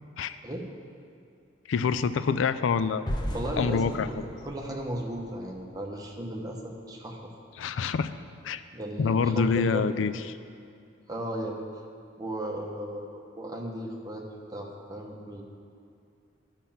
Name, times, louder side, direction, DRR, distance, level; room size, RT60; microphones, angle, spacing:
voice 1, 1.7-3.1 3.6-4.1 7.6-8.1 8.4-8.6 9.0-10.4, left 5 dB, 85° left, 12 dB, 0.4 m, -26 dB
sound 1, 3.1-6.1, equal, 25° left, 0.6 m, -36 dB
voice 2, 3.3-7.3 8.7-9.9 11.1-11.7 12.2-14.2 14.5-15.4, right 1 dB, 20° right, 0 dB, 1.0 m, -35 dB
11.0 x 5.7 x 7.2 m, 2.5 s
head